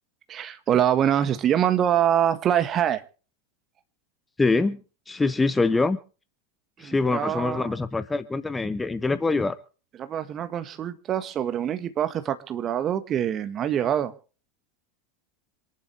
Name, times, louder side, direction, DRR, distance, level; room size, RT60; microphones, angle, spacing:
voice 1, 0.3-3.0 6.8-7.7 10.0-14.1, right 10 dB, 30° right, 1.5 m, -24 dB
voice 2, 4.4-4.8 5.1-6.0 6.8-9.6, left 3 dB, 10° left, 0.8 m, -24 dB
27.0 x 11.0 x 3.3 m
figure-of-eight pair, 90°, 0 cm